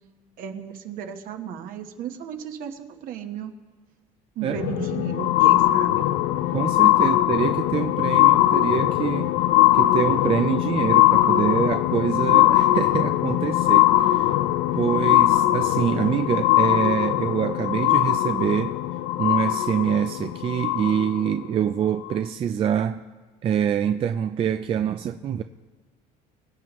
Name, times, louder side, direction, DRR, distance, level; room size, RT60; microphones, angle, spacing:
voice 1, 0.4-3.5 4.3-6.0, right 8 dB, 60° right, 1.3 m, -34 dB
sound 1, 4.5-21.3 22.1-22.2, left 15 dB, 80° left, 0.6 m, -20 dB
voice 2, 6.5-9.3 9.7-14.3 14.7-18.8 19.2-23.0 23.4-25.4, right 9 dB, 35° right, 0.4 m, -25 dB
24.0 x 9.1 x 3.1 m
cardioid pair, 120°, 17 cm